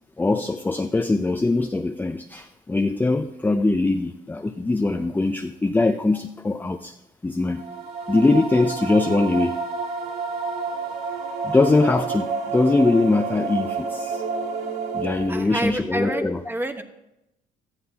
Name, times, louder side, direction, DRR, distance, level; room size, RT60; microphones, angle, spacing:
voice 1, 0.2-6.9 7.2-7.6 8.1-9.6 11.4-14.2 14.9-16.4, left 2 dB, 10° left, 6 dB, 0.5 m, -22 dB
sound 1, 7.5-15.6, right 4 dB, 75° right, 2.2 m, -29 dB
voice 2, 15.3-16.8, right 1 dB, 10° right, 7 dB, 1.2 m, -28 dB
17.5 x 13.0 x 2.9 m, 0.89 s
cardioid pair, 110°, 17 cm